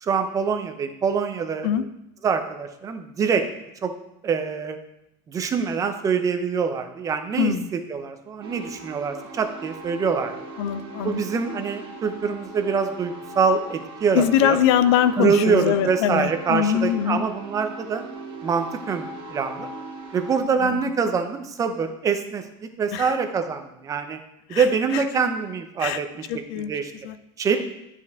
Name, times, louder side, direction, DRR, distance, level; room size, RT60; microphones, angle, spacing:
voice 1, 0.0-1.7 2.2-3.4 3.8-3.9 4.2-4.8 5.3-10.4 11.0-14.6 15.2-18.0 18.4-19.7 20.1-22.4 22.8-24.2 24.5-26.3 26.5-26.9 27.4-27.6, right 5 dB, 25° right, 7 dB, 0.7 m, -24 dB
voice 2, 7.4-7.7 10.6-11.2 14.1-17.2 20.6-20.8 22.9-23.2 24.5-24.7 24.9-25.0 25.8-26.0 26.3-26.7 27.0-27.2, left 9 dB, 70° left, 12 dB, 0.5 m, -22 dB
sound 1, 8.4-20.4, right 3 dB, 40° right, 1.3 m, -39 dB
9.8 x 4.5 x 3.6 m, 0.83 s
supercardioid pair, 145°, 14 cm